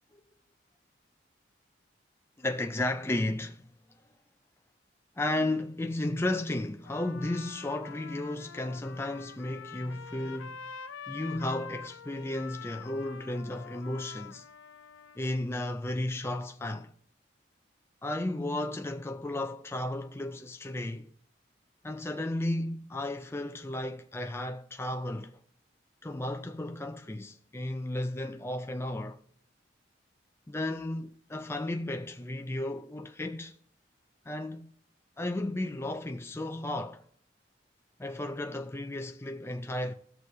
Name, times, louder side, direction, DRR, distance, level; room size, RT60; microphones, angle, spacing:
voice 1, 2.4-3.6 5.2-10.6 11.1-14.5 15.2-16.9 18.0-21.1 21.8-25.4 26.0-29.2 30.5-33.5 34.3-34.7 35.2-37.0 38.0-39.9, left 1 dB, 15° left, 0.4 m, -34 dB
Trumpet, 6.8-15.3, left 6 dB, 90° left, 0.5 m, -46 dB
18.5 x 6.5 x 2.7 m
head